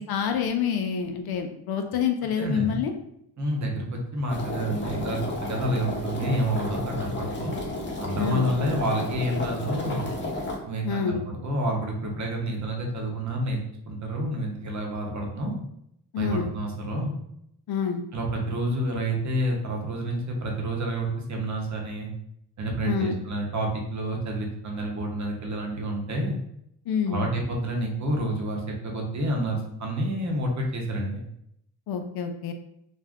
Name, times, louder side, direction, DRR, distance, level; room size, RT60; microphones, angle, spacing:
voice 1, 0.0-2.9 8.2-8.5 10.8-11.2 16.1-16.5 17.7-18.0 22.8-23.2 26.9-27.3 31.9-32.5, left 7 dB, 60° left, 5 dB, 0.5 m, -27 dB
voice 2, 2.4-2.8 3.4-7.6 8.0-10.1 10.6-13.6 13.9-15.6 16.2-17.1 18.1-22.1 22.6-26.4 27.1-31.2, right 1 dB, 40° right, 0 dB, 0.8 m, -29 dB
sound 1, 4.3-10.6, left 1 dB, 25° left, 0.8 m, -32 dB
2.5 x 2.1 x 3.4 m, 0.76 s
cardioid pair, 75°, 42 cm